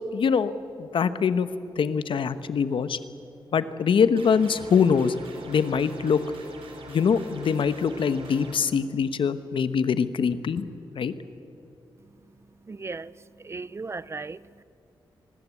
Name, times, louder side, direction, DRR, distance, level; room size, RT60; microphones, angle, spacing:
voice 1, 0.1-0.5 0.8-1.5 1.8-3.0 3.5-5.1 5.5-6.2 6.9-10.6 10.9-11.1, left 6 dB, 75° left, 1.1 m, -23 dB
sound 1, 4.2-8.5, right 3 dB, 85° right, 4.6 m, -44 dB
voice 2, 12.7-13.1 13.4-14.6, right 4 dB, 30° right, 0.5 m, -36 dB
24.5 x 19.5 x 8.4 m
cardioid pair, 95°, 9 cm